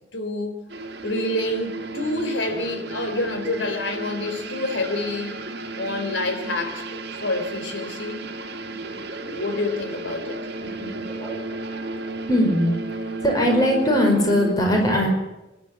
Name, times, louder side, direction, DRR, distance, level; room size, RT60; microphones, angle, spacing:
voice 1, 0.1-0.6 1.0-5.3 5.8-8.2 9.2-10.4, left 2 dB, 85° left, 3.8 m, -28 dB
sound 1, 0.7-14.5, right 2 dB, 60° right, 2.1 m, -33 dB
voice 2, 10.6-11.4 12.3-12.7 13.2-15.1, equal, 20° left, 5.2 m, -20 dB
25.0 x 12.0 x 9.4 m
head